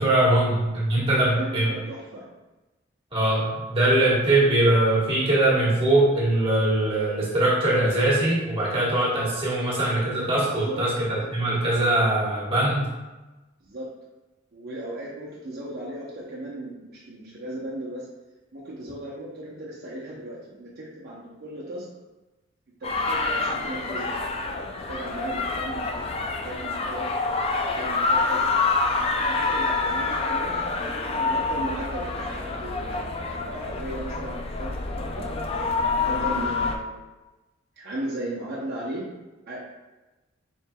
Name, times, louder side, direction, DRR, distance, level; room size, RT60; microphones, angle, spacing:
voice 1, 0.0-1.8 3.1-12.9, right 1 dB, 25° right, -7 dB, 1.5 m, -22 dB
voice 2, 1.1-2.3 10.4-10.8 13.6-13.9 14.5-18.1 18.5-21.9 22.8-24.2 24.7-27.1 27.6-28.5 29.1-35.3 36.1-36.9 37.8-39.1 39.5-39.6, right 1 dB, 50° right, -6 dB, 0.7 m, -36 dB
sound 1, 22.8-36.8, left 3 dB, 30° left, 0.3 m, -27 dB
4.4 x 4.4 x 2.2 m, 1.1 s
head